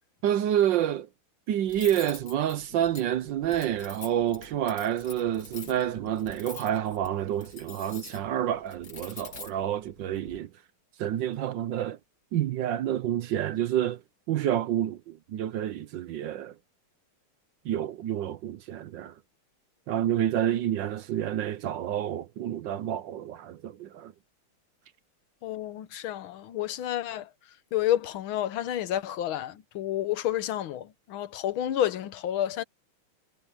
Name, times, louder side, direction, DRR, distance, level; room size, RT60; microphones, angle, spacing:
voice 1, 0.2-1.1 1.5-10.5 11.0-12.0 12.3-14.0 14.3-16.5 17.6-19.1 19.9-24.1, right 11 dB, 70° right, 1.3 m, -28 dB
Cutlery silverware, 1.7-10.4, left 4 dB, 50° left, 2.8 m, -46 dB
voice 2, 25.4-27.3 27.7-32.6, left 12 dB, 75° left, 1.7 m, -30 dB
omnidirectional pair, 2.3 m